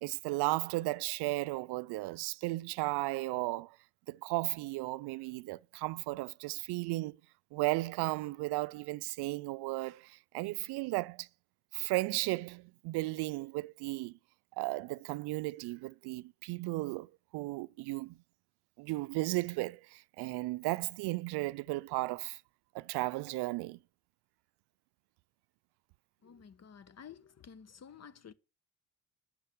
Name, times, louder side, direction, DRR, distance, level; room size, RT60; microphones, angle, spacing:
voice 1, 0.0-3.8 4.1-7.2 7.5-11.3 11.7-14.2 14.6-18.2 18.8-22.4 22.7-23.8, right 21 dB, 70° right, 0.6 m, -35 dB
voice 2, 26.2-28.3, left 7 dB, 40° left, 1.2 m, -52 dB
12.0 x 7.6 x 6.2 m
hypercardioid pair, 55°, 41 cm